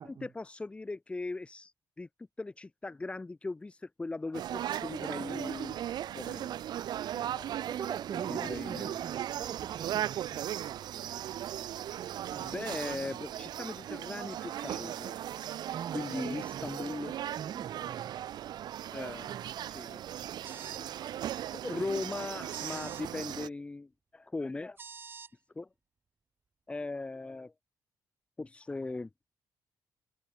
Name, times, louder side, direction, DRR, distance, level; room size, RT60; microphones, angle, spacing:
voice 1, 0.0-2.1 2.4-5.8 6.1-6.6 7.1-7.7 8.1-9.0 12.3-15.2 15.9-17.2 18.9-20.0 20.8-21.1 21.5-24.8 25.6-25.7 26.7-27.5 28.4-29.1, left 3 dB, 15° left, 0.6 m, -39 dB
sound 1, 4.3-23.5, right 11 dB, 70° right, 0.7 m, -37 dB
voice 2, 7.7-10.5 15.7-16.7 17.4-18.2 19.3-19.5 21.8-21.9, right 8 dB, 50° right, 1.3 m, -43 dB
sound 2, 20.4-20.9 22.5-23.1 24.8-25.3, right 5 dB, 30° right, 0.9 m, -47 dB
cardioid pair, 130°, 8 cm